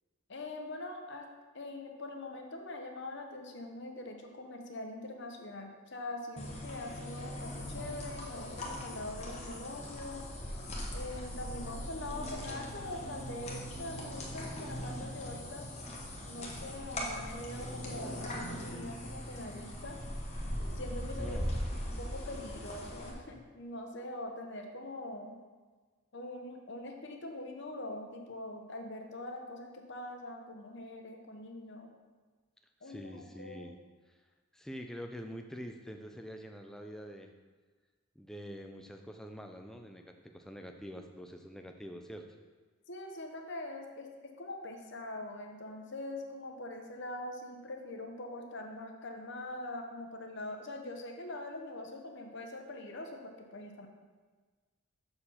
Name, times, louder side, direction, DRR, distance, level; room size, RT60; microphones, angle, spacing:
voice 1, 0.3-1.3 1.5-10.2 10.9-15.6 16.2-20.0 20.7-21.4 21.7-25.4 26.1-31.9 32.8-33.7 42.9-44.1 44.4-53.9, left 2 dB, 55° left, 3 dB, 0.9 m, -43 dB
sound 1, 6.4-23.1, equal, 30° left, 1.1 m, -40 dB
voice 2, 21.2-21.5 32.8-33.8 34.5-37.3 38.2-42.3, equal, ahead, 4 dB, 0.4 m, -45 dB
6.7 x 4.5 x 5.6 m, 1.4 s
head